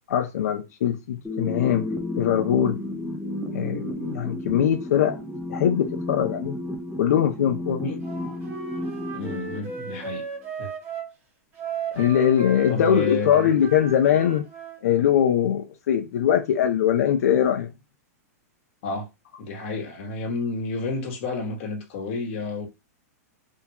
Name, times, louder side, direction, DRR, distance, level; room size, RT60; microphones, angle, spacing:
voice 1, 0.1-1.9 2.2-2.8 3.5-5.2 5.5-6.6 7.0-7.8 12.0-14.4 14.8-17.7, left 9 dB, 70° left, 0.5 m, -22 dB
sound 1, 1.2-10.3, left 1 dB, ahead, 0.5 m, -33 dB
Wind instrument woodwind instrument, 8.0-11.1 11.6-14.8, right 3 dB, 25° right, 0.9 m, -35 dB
voice 2, 9.1-10.2 10.6-10.7 11.9-12.1 12.7-13.5 18.8-19.1 19.4-22.7, left 3 dB, 50° left, 1.1 m, -30 dB
3.5 x 2.2 x 2.8 m
supercardioid pair, 155°, 9 cm